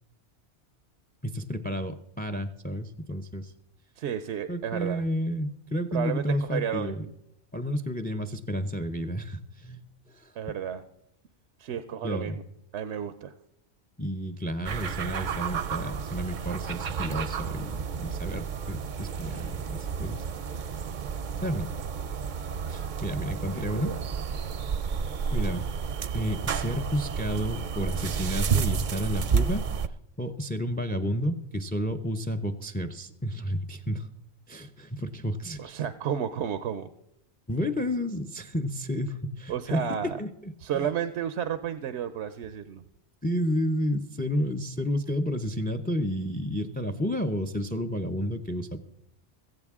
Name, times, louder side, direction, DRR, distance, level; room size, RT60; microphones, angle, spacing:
voice 1, 1.2-3.5 4.5-7.1 7.5-9.8 10.1-10.3 12.0-12.4 14.0-20.2 20.6-20.7 21.4-21.7 22.7-23.9 25.3-25.6 26.1-29.6 30.2-34.1 34.5-35.8 37.5-40.9 43.2-48.8, equal, 10° left, 10 dB, 0.4 m, -31 dB
voice 2, 4.0-5.0 5.9-7.1 10.4-10.8 11.6-12.4 12.7-13.3 23.5-24.0 35.6-36.9 39.5-40.2 40.6-42.8, right 9 dB, 80° right, 12 dB, 0.9 m, -32 dB
sound 1, 14.6-29.9, right 6 dB, 55° right, 0.6 m, -31 dB
16.0 x 15.0 x 3.6 m, 0.80 s
omnidirectional pair, 1.1 m